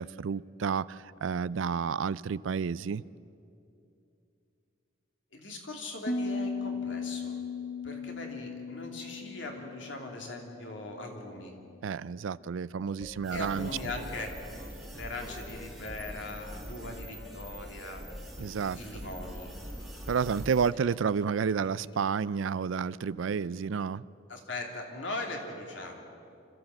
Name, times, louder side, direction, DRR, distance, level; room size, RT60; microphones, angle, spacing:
voice 1, 0.0-3.0 11.8-13.7 18.4-18.8 20.1-24.0, right 6 dB, 75° right, 20 dB, 0.4 m, -30 dB
voice 2, 5.3-7.3 7.8-11.5 13.3-14.3 14.6-18.0 18.8-19.5 24.3-26.0, left 2 dB, 65° left, 2 dB, 2.9 m, -40 dB
Piano, 6.1-11.7, left 4 dB, 40° left, 0.7 m, -37 dB
sound 1, 12.8-22.4, left 1 dB, 25° left, 1.1 m, -54 dB
sound 2, 13.2-20.7, equal, ahead, 2.1 m, -43 dB
26.0 x 14.0 x 7.8 m, 2.6 s
head